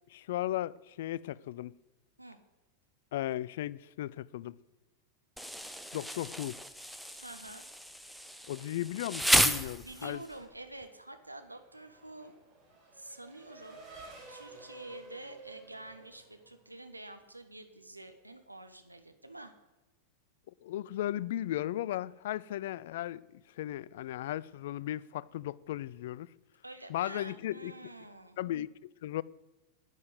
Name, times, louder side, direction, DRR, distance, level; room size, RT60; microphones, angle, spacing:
voice 1, 0.1-1.8 3.1-4.6 5.9-6.6 8.5-10.2 20.6-26.3 26.9-27.9 28.4-29.2, left 13 dB, 55° left, 0.4 m, -36 dB
Insect, 5.4-10.3, equal, ahead, 0.9 m, -32 dB
voice 2, 7.1-7.6 9.8-12.4 12.9-13.8 14.3-19.5 26.6-28.4, right 2 dB, 85° right, 1.2 m, -48 dB
Race car auto racing / Accelerating revving vroom, 10.9-17.0, right 3 dB, 30° right, 4.5 m, -53 dB
10.5 x 9.1 x 7.9 m
figure-of-eight pair, 90°, 0 cm